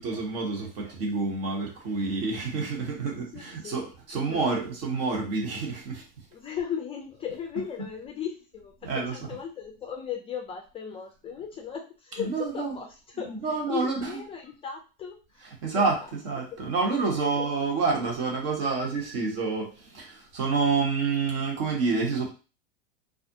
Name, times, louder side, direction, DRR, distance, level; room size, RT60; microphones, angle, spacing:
voice 1, 0.0-6.0 8.8-9.1 12.2-12.7 13.2-14.1 15.6-16.0 16.2-22.3, right 4 dB, 65° right, 0 dB, 1.1 m, -28 dB
voice 2, 3.3-3.8 4.1-4.6 6.3-15.9 16.4-16.6 17.1-17.5, left 7 dB, 20° left, 2 dB, 0.3 m, -37 dB
2.4 x 2.1 x 2.7 m, 0.33 s
hypercardioid pair, 105°, 31 cm